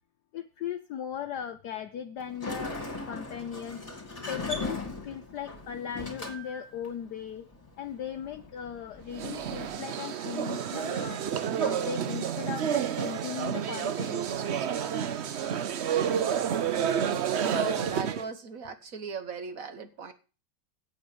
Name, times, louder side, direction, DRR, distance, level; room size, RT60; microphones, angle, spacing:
voice 1, 0.3-3.8 4.3-7.4 7.8-11.2 11.6-14.2, left 9 dB, 65° left, 7 dB, 1.3 m, -38 dB
Sliding door, 2.2-9.7, left 2 dB, 15° left, 2.8 m, -39 dB
sound 1, 9.1-18.3, right 8 dB, 85° right, 0.5 m, -30 dB
voice 2, 17.4-20.1, right 5 dB, 50° right, 10 dB, 1.5 m, -38 dB
8.5 x 8.1 x 8.7 m, 0.35 s
omnidirectional pair, 2.2 m